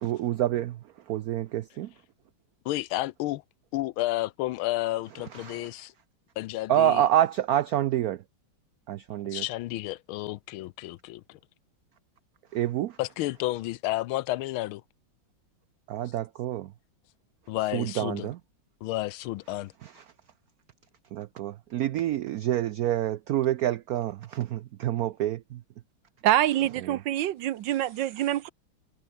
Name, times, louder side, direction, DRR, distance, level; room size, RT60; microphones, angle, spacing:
voice 1, 0.0-1.9 5.3-5.7 6.7-8.2 8.9-9.4 12.5-13.0 15.9-16.7 17.7-18.4 19.8-19.9 21.1-25.6 26.8-27.0, right 12 dB, 85° right, 0.8 m, -27 dB
voice 2, 2.6-3.4 3.7-5.9 6.4-7.0 9.1-11.4 13.0-14.8 17.5-18.3 18.8-19.7, left 16 dB, 85° left, 1.5 m, -31 dB
voice 3, 26.2-28.5, right 13 dB, 70° right, 1.3 m, -25 dB
omnidirectional pair, 2.2 m